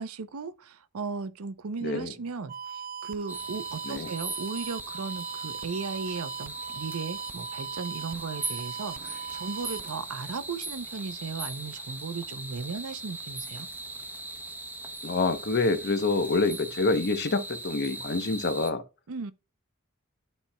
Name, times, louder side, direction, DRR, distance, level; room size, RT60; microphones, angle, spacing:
voice 1, 0.0-13.7 19.1-19.3, right 4 dB, 80° right, 0.6 m, -36 dB
voice 2, 1.8-2.1 3.8-4.1 15.0-18.8, left 3 dB, 50° left, 0.8 m, -27 dB
sound 1, 2.5-9.9, right 7 dB, 40° right, 0.3 m, -39 dB
sound 2, 3.3-18.7, right 2 dB, 10° right, 0.8 m, -39 dB
12.0 x 4.4 x 2.2 m
head